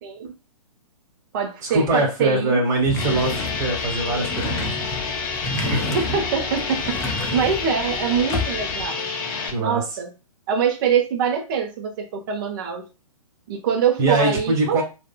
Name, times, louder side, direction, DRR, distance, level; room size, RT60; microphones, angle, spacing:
voice 1, 0.0-0.3 1.3-2.6 5.6-9.1 9.6-10.1 10.5-12.9 13.5-14.8, right 7 dB, 35° right, 1.2 m, -24 dB
voice 2, 1.6-4.7 5.7-6.1 9.5-9.8 14.0-14.8, right 2 dB, 15° right, 1.7 m, -23 dB
sound 1, 2.9-8.9, left 2 dB, 15° left, 0.6 m, -30 dB
sound 2, 3.0-9.5, left 4 dB, 35° left, 1.0 m, -29 dB
6.6 x 2.8 x 2.4 m
figure-of-eight pair, 120°, 20 cm